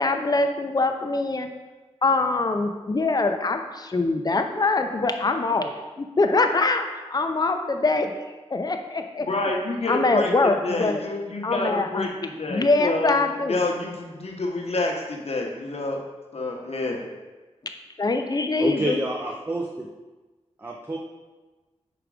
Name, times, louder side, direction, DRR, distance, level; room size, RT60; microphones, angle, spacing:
voice 1, 0.0-1.5 2.0-5.7 6.0-8.1 8.5-9.3 9.9-11.0 11.4-12.1 12.5-13.6 18.0-19.0, left 3 dB, 35° left, 5 dB, 0.6 m, -23 dB
voice 2, 9.2-16.0 16.3-17.0, left 2 dB, 60° left, 1 dB, 1.0 m, -28 dB
voice 3, 18.6-19.9 20.6-21.0, right 1 dB, 20° right, 0 dB, 0.6 m, -28 dB
5.1 x 4.8 x 4.8 m, 1.2 s
wide cardioid pair, 90°, 12 cm